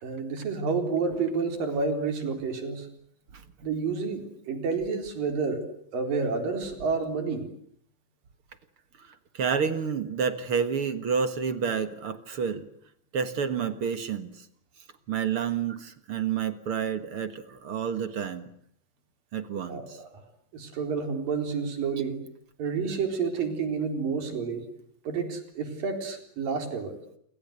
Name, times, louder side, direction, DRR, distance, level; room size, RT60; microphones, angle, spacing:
voice 1, 0.0-2.9 3.6-5.6 5.9-7.5 19.7-19.9 20.1-20.2 20.5-22.2 22.6-24.6 25.1-27.0, right 5 dB, 80° right, 7 dB, 5.8 m, -29 dB
voice 2, 9.0-12.7 13.1-14.5 15.1-18.5 19.3-20.0, right 6 dB, 50° right, 11 dB, 1.9 m, -29 dB
28.5 x 24.0 x 8.1 m, 0.64 s
omnidirectional pair, 3.9 m